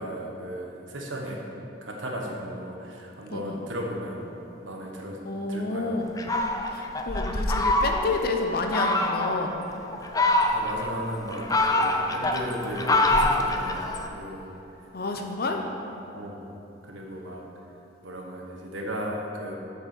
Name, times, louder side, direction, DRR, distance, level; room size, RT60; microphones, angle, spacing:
voice 1, 0.0-1.5 1.8-4.3 4.6-5.2 5.5-6.0 10.5-14.5 15.2-15.6 16.1-16.5 16.8-17.5 18.0-19.5, equal, 85° right, 0 dB, 1.3 m, -35 dB
voice 2, 3.3-3.7 5.2-6.1 6.7-9.5 14.9-15.6, left 3 dB, 55° left, 3 dB, 0.8 m, -29 dB
Fowl, 6.2-8.2 8.7-9.3 9.9-10.9 11.3-14.1, left 2 dB, 20° left, 0.5 m, -24 dB
7.6 x 6.9 x 6.2 m, 3.0 s
head